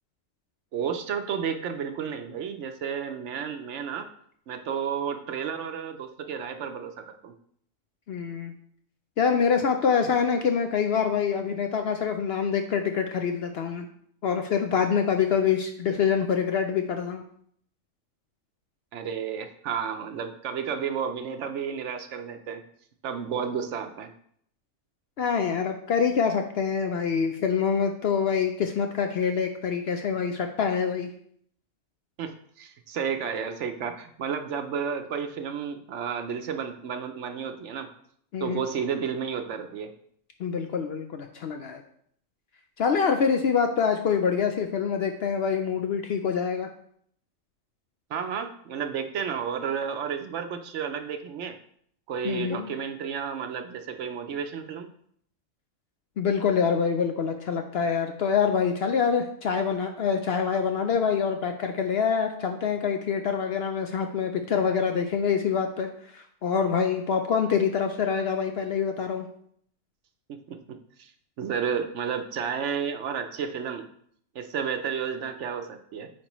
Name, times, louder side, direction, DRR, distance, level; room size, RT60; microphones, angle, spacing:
voice 1, 0.7-4.1 4.5-7.3 18.9-22.6 23.0-24.1 32.2-37.9 38.4-39.9 48.1-51.6 52.1-54.9 70.3-71.1 71.4-73.9 74.3-76.1, right 7 dB, 65° right, 7 dB, 0.9 m, -32 dB
voice 2, 8.1-8.5 9.2-13.9 14.2-17.2 25.2-31.1 38.3-38.6 40.4-41.8 42.8-46.7 52.2-52.7 56.2-69.3, left 6 dB, 65° left, 5 dB, 0.7 m, -25 dB
8.5 x 4.6 x 3.0 m, 0.66 s
omnidirectional pair, 1.4 m